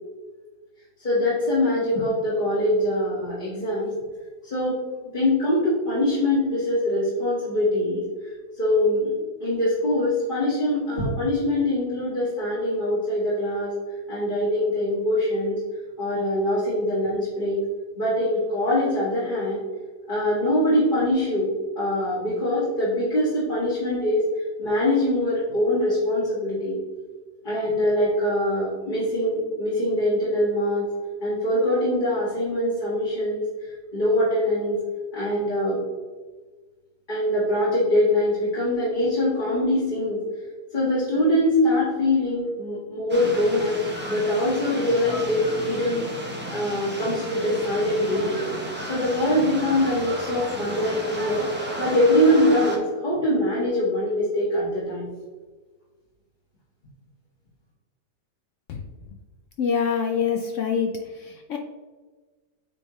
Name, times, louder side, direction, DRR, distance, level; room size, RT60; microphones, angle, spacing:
voice 1, 1.0-3.9 4.4-4.8 5.1-9.1 9.4-13.7 14.1-15.6 16.0-17.6 18.0-19.6 20.1-24.2 24.6-26.8 27.4-30.9 31.2-33.4 33.9-34.8 35.1-35.8 37.1-40.2 40.7-43.8 44.1-46.1 46.5-48.4 48.9-51.5 51.8-55.0, left 1 dB, 30° left, -9 dB, 1.8 m, -23 dB
sound 1, 43.1-52.8, equal, 10° right, 0.6 m, -34 dB
voice 2, 59.6-60.9 61.2-61.6, left 6 dB, 70° left, 3 dB, 0.7 m, -25 dB
8.5 x 3.7 x 3.1 m, 1.3 s
omnidirectional pair, 1.8 m